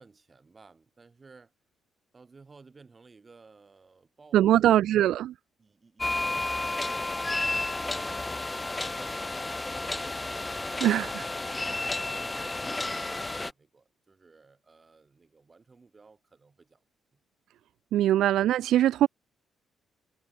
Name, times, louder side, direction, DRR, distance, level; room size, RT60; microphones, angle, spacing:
voice 1, 0.0-1.5 2.1-4.7 5.6-10.0 11.6-12.6 12.9-16.8, right 4 dB, 30° right, 4.7 m, -56 dB
voice 2, 4.3-5.3 10.8-11.3 11.6-11.8 17.9-19.1, right 12 dB, 80° right, 0.3 m, -22 dB
sound 1, 6.0-13.5, left 2 dB, 15° left, 0.4 m, -32 dB
cardioid pair, 90°, 0 cm